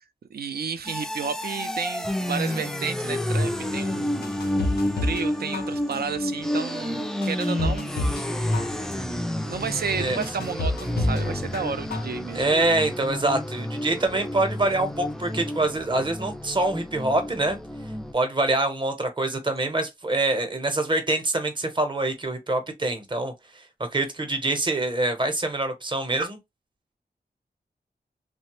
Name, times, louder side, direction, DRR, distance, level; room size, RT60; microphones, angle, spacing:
voice 1, 0.3-7.9 9.3-12.5, right 6 dB, 75° right, 0.4 m, -32 dB
sound 1, 0.8-18.1, left 1 dB, 5° left, 0.3 m, -30 dB
sound 2, 4.2-5.3 5.5-6.2 6.7-6.8 7.2-8.3 8.5-9.2 9.7-9.8 10.2-11.2 11.5-12.2 12.5-12.6, left 2 dB, 85° left, 0.6 m, -29 dB
voice 2, 12.3-17.6 18.1-23.6 23.9-26.4, right 2 dB, 30° right, 0.7 m, -25 dB
3.2 x 2.0 x 2.9 m
wide cardioid pair, 115°, 16 cm